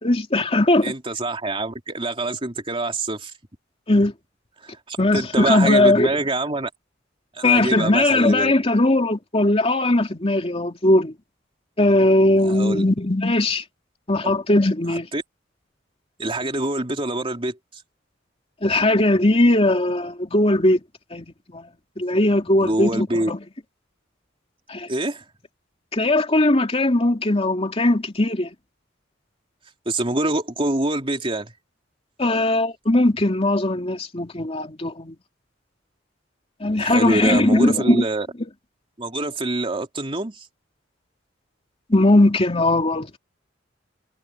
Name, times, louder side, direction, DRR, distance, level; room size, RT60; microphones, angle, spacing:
voice 1, 0.0-0.9 3.9-4.1 5.0-6.1 7.4-11.1 11.8-13.6 14.1-15.1 18.6-20.8 21.1-21.7 22.0-23.4 24.7-24.9 25.9-28.5 32.2-35.2 36.6-38.1 41.9-43.2, left 1 dB, 30° left, 2.9 m, -19 dB
voice 2, 0.8-3.3 4.6-6.7 7.3-8.5 12.4-12.8 14.9-15.2 16.2-17.6 22.6-23.3 24.9-25.2 29.8-31.5 36.8-38.3 39.0-40.5, right 2 dB, 30° right, 3.2 m, -25 dB
head